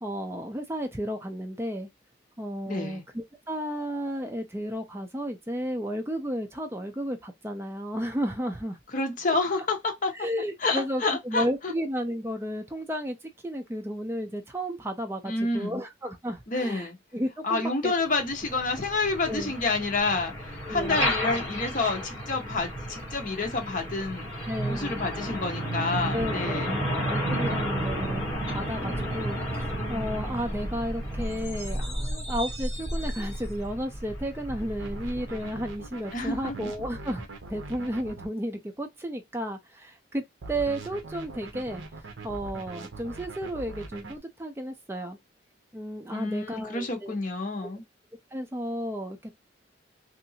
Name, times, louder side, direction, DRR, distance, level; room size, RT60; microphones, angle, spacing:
voice 1, 0.0-1.9 2.4-8.8 10.1-13.2 13.4-16.9 17.1-17.9 19.3-19.5 20.7-21.1 24.5-25.0 26.1-37.2 37.5-41.8 42.2-45.2 45.7-47.2 48.3-49.3, equal, 10° right, 0.5 m, -33 dB
voice 2, 2.7-3.0 8.9-10.2 10.6-11.7 15.2-15.8 16.5-17.0 17.4-24.3 24.7-26.8 36.1-36.6 46.1-47.8, left 3 dB, 40° left, 0.7 m, -29 dB
Truck, 18.1-35.7, equal, 15° left, 1.4 m, -32 dB
sound 1, 34.8-38.3 40.4-44.2, right 3 dB, 75° right, 0.7 m, -41 dB
2.8 x 2.6 x 2.7 m
head